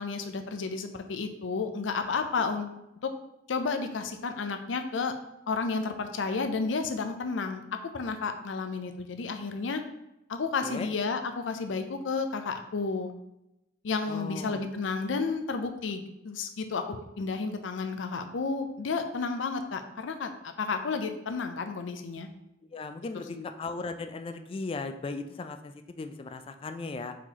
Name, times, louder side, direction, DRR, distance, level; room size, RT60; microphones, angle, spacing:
voice 1, 0.0-2.8 3.0-3.1 3.5-5.1 5.5-7.6 7.9-9.8 10.3-13.1 13.8-22.3 23.3-23.5, left 4 dB, 80° left, 7 dB, 0.5 m, -32 dB
voice 2, 14.1-14.7 22.7-27.2, left 3 dB, 30° left, 8 dB, 0.3 m, -37 dB
4.6 x 2.9 x 3.9 m, 0.87 s
head